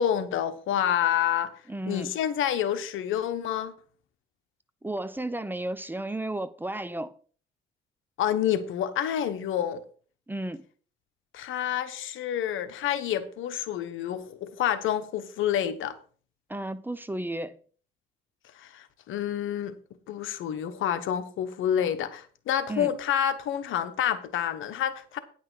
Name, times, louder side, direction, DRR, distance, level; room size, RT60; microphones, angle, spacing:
voice 1, 0.0-1.5 1.9-3.7 8.2-9.8 11.3-15.9 18.6-19.7 20.1-25.2, left 10 dB, 80° left, 1.2 m, -28 dB
voice 2, 1.7-2.1 4.8-7.1 10.3-10.6 16.5-17.6 22.7-22.9, right 1 dB, 10° right, 0.7 m, -33 dB
10.0 x 5.9 x 6.2 m
cardioid pair, 90°, 20 cm